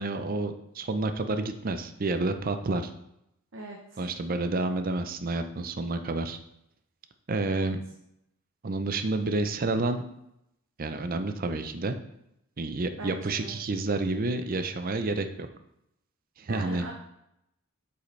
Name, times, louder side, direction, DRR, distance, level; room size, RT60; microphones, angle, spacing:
voice 1, 0.0-2.9 4.0-6.4 7.3-7.8 8.6-10.0 10.8-12.0 12.6-15.5 16.4-16.9, right 2 dB, 40° right, 8 dB, 0.5 m, -29 dB
voice 2, 3.5-4.0 7.5-7.7 13.0-13.5 16.5-16.9, right 2 dB, 60° right, 0 dB, 0.9 m, -40 dB
8.1 x 5.6 x 3.2 m, 0.82 s
head